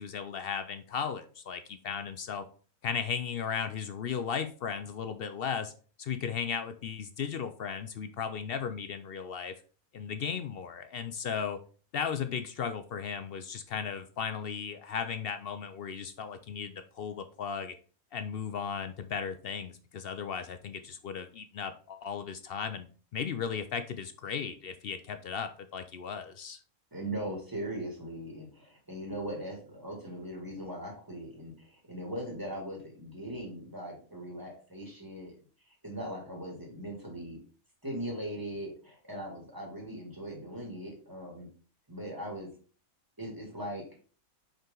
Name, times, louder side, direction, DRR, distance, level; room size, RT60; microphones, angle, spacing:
voice 1, 0.0-2.4 2.8-5.7 6.0-9.5 9.9-11.6 11.9-17.7 18.1-22.9 23.1-26.6, left 7 dB, 65° left, 9 dB, 0.6 m, -36 dB
voice 2, 26.9-35.3 35.8-37.4 37.8-41.5 41.9-42.5 43.2-43.9, right 1 dB, 15° right, -1 dB, 2.2 m, -39 dB
5.4 x 5.1 x 3.8 m, 0.40 s
omnidirectional pair, 1.5 m